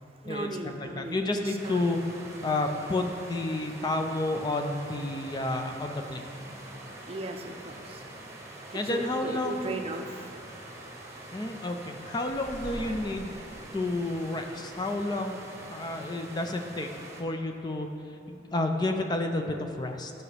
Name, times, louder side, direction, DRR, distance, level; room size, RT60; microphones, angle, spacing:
voice 1, 0.2-1.9 7.1-8.0 8.7-10.3, right 2 dB, 35° right, 4 dB, 0.5 m, -37 dB
voice 2, 0.8-2.0 2.4-6.3 8.7-9.8 11.3-13.4 13.7-16.9 17.2-20.1, left 2 dB, 25° left, 4 dB, 0.4 m, -30 dB
sound 1, 1.6-17.2, right 1 dB, 15° right, 1.0 m, -45 dB
sound 2, 12.2-15.1, equal, 50° left, 0.9 m, -45 dB
13.5 x 5.9 x 3.3 m, 2.7 s
head